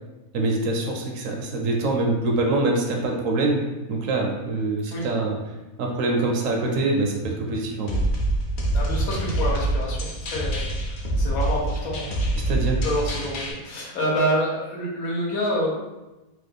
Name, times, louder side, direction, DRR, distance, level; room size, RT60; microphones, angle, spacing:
voice 1, 0.3-3.6 3.9-5.4 5.8-8.0 12.5-12.8, right 2 dB, 70° right, 1 dB, 0.9 m, -24 dB
sound 1, 7.9-13.5, right 1 dB, 60° left, 0.8 m, -25 dB
voice 2, 8.7-12.3 12.8-15.7, equal, 85° left, -4 dB, 1.3 m, -27 dB
3.1 x 2.1 x 3.4 m, 1.0 s
omnidirectional pair, 1.5 m